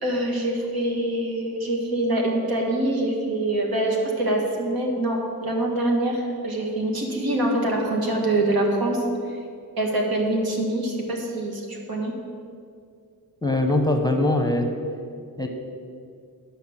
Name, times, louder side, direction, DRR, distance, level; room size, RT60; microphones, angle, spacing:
voice 1, 0.0-9.0 9.8-12.1, right 1 dB, 85° right, 0 dB, 1.8 m, -24 dB
voice 2, 13.4-14.7 15.4-15.5, left 1 dB, 10° left, 3 dB, 0.7 m, -21 dB
10.0 x 5.7 x 7.3 m, 2.3 s
wide cardioid pair, 160°, 35 cm